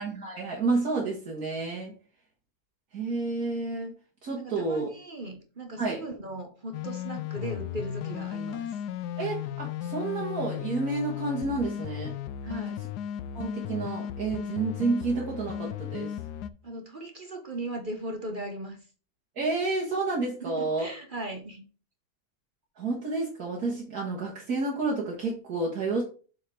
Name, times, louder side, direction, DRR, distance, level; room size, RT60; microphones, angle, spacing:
voice 1, 0.0-1.9 2.9-3.9 4.2-4.9 5.8-6.0 9.2-12.1 13.3-16.2 19.4-20.9 22.8-26.0, right 3 dB, 70° right, -4 dB, 2.0 m, -30 dB
voice 2, 4.4-8.8 12.4-12.8 16.6-18.8 20.4-21.6, right 1 dB, 40° right, 5 dB, 0.9 m, -38 dB
sound 1, 6.7-16.5, left 10 dB, 85° left, 1.2 m, -35 dB
7.6 x 4.2 x 4.5 m, 0.38 s
omnidirectional pair, 1.7 m